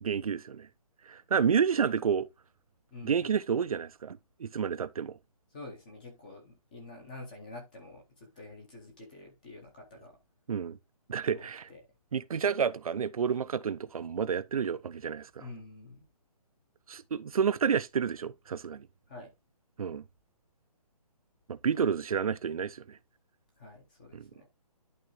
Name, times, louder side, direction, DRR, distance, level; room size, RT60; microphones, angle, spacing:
voice 1, 0.0-0.7 1.1-2.3 3.0-5.2 10.5-10.8 11.1-11.7 12.1-15.4 16.9-18.9 19.8-20.0 21.5-23.0 24.1-24.3, right 7 dB, 65° right, 0.5 m, -30 dB
voice 2, 2.9-3.3 5.5-10.2 11.3-11.8 15.4-16.1 19.1-19.3 23.6-24.5, left 2 dB, 15° left, 0.8 m, -48 dB
11.0 x 3.8 x 3.0 m
hypercardioid pair, 175°, 20 cm